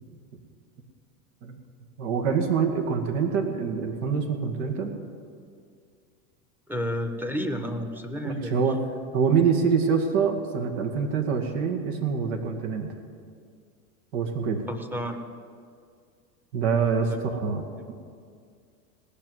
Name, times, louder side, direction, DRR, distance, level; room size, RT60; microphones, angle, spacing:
voice 1, 2.0-4.9 8.2-8.8 9.1-12.9 14.1-14.6 16.5-17.9, right 6 dB, 65° right, 4 dB, 2.3 m, -25 dB
voice 2, 6.7-8.5 14.7-15.2 17.1-17.2, equal, 5° right, 4 dB, 1.2 m, -31 dB
17.5 x 7.0 x 9.3 m, 2.2 s
supercardioid pair, 110°, 43 cm